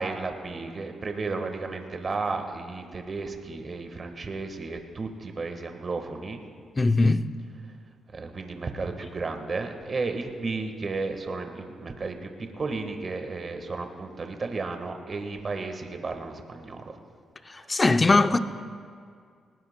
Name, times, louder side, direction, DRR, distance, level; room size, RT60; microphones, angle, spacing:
voice 1, 0.0-6.4 8.1-16.8 17.5-17.8 18.2-18.3, right 3 dB, 45° right, 1.4 m, -33 dB
voice 2, 6.8-7.3 17.5-18.4, left 3 dB, 30° left, 0.6 m, -21 dB
19.5 x 18.5 x 2.2 m
cardioid pair, 65°, 0 cm